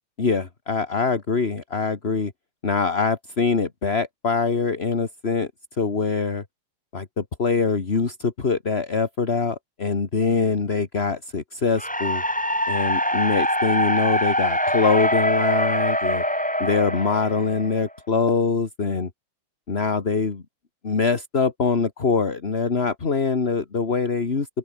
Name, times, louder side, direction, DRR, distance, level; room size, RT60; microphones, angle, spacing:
voice 1, 0.2-2.3 2.6-5.5 5.8-6.4 6.9-12.2 12.7-16.2 16.6-19.1 19.7-20.4 20.8-24.5, left 4 dB, 25° left, 1.5 m, -23 dB
sound 1, 11.8-17.9, equal, ahead, 4.9 m, -24 dB
open air
omnidirectional pair, 3.4 m